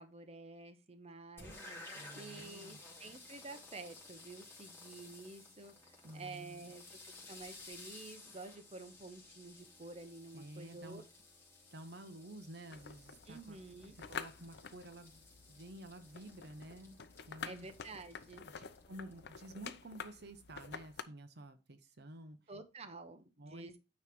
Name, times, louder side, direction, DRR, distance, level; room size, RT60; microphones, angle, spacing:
voice 1, 0.0-1.9 2.1-11.0 13.3-13.9 17.4-18.5 22.5-23.7, right 3 dB, 35° right, 8 dB, 0.9 m, -50 dB
sound 1, 1.4-19.3, left 2 dB, 10° left, 2.4 m, -56 dB
voice 2, 1.9-2.8 6.0-6.7 10.3-11.1 11.7-13.6 14.0-15.2 15.5-17.0 17.3-17.7 18.5-22.4 23.4-23.7, right 1 dB, 60° right, 9 dB, 0.9 m, -51 dB
sound 2, 12.7-21.0, left 6 dB, 60° left, 0.7 m, -49 dB
9.3 x 3.2 x 6.0 m, 0.29 s
head